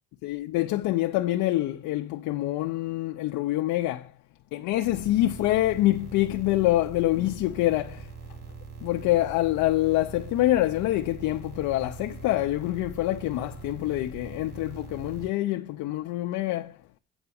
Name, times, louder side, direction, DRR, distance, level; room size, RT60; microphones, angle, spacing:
voice 1, 0.2-4.1 4.5-8.1 8.8-16.8, left 16 dB, 85° left, 0.5 m, -26 dB
sound 1, 4.8-15.3, right 5 dB, 50° right, 2.8 m, -43 dB
7.9 x 4.7 x 6.9 m
cardioid pair, 90°, 30 cm